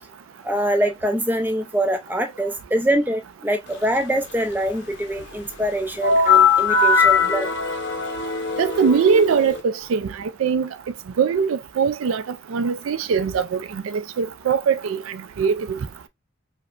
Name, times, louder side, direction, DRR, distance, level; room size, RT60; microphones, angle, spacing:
voice 1, 0.4-7.5, right 1 dB, 10° right, 0.5 m, -24 dB
sound 1, 6.0-9.6, left 5 dB, 55° left, 0.8 m, -19 dB
voice 2, 8.6-10.1 10.4-10.7 11.2-12.2 12.5-15.0 15.4-15.8, right 6 dB, 75° right, 0.4 m, -21 dB
4.9 x 2.2 x 2.4 m
head